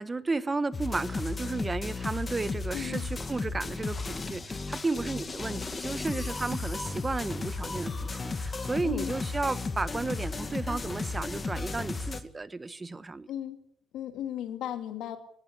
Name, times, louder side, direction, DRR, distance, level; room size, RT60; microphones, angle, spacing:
voice 1, 0.0-13.3, right 3 dB, 25° right, 14 dB, 1.1 m, -33 dB
sound 1, 0.7-12.2, left 3 dB, 30° left, 2.0 m, -34 dB
voice 2, 2.7-3.1 8.8-9.1 13.3-13.6 13.9-15.2, left 11 dB, 85° left, 7 dB, 2.6 m, -35 dB
21.0 x 15.0 x 8.3 m, 0.69 s
cardioid pair, 90°, 0 cm